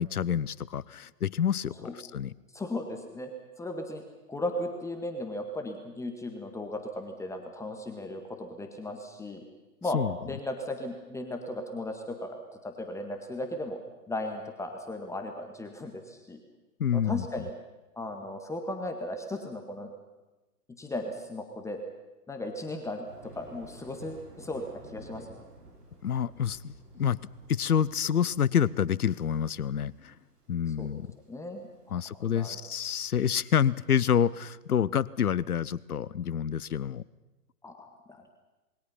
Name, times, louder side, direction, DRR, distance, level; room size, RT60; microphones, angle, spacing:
voice 1, 0.0-2.3 9.9-10.2 16.8-17.3 26.0-27.2 27.5-30.1 30.5-31.1 31.9-37.0, left 8 dB, 65° left, 21 dB, 0.9 m, -28 dB
voice 2, 2.5-3.3 3.6-4.0 4.3-9.4 9.8-10.0 10.2-13.8 14.1-16.4 16.9-17.5 17.9-19.9 20.8-21.8 22.3-23.0 23.3-24.6 24.9-25.4 30.8-30.9 31.3-32.6 37.6-38.2, left 1 dB, 5° left, 4 dB, 1.8 m, -36 dB
Thunder, 23.0-34.2, right 2 dB, 75° right, 5.4 m, -53 dB
27.5 x 21.5 x 5.8 m, 1.1 s
figure-of-eight pair, 115°, 48 cm